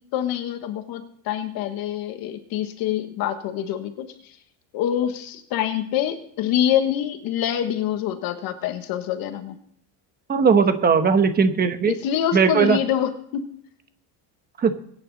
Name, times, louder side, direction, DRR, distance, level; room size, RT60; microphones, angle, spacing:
voice 1, 0.1-4.1 4.7-9.6 11.9-13.5, left 10 dB, 55° left, 8 dB, 1.3 m, -25 dB
voice 2, 10.3-11.9 12.3-12.8 14.6-14.7, right 5 dB, 20° right, 9 dB, 1.1 m, -18 dB
22.5 x 9.6 x 4.0 m, 0.68 s
cardioid pair, 160°, 41 cm